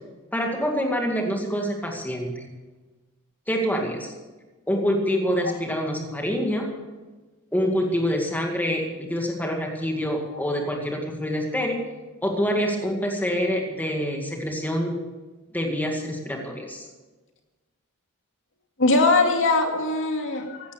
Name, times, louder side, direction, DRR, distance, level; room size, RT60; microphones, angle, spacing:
voice 1, 0.3-2.5 3.5-4.1 4.7-6.7 7.5-11.8 12.2-14.9 15.5-16.9, equal, 10° left, 1 dB, 2.2 m, -26 dB
voice 2, 18.8-20.7, left 3 dB, 60° left, 3 dB, 2.3 m, -21 dB
16.0 x 12.5 x 6.9 m, 1.2 s
head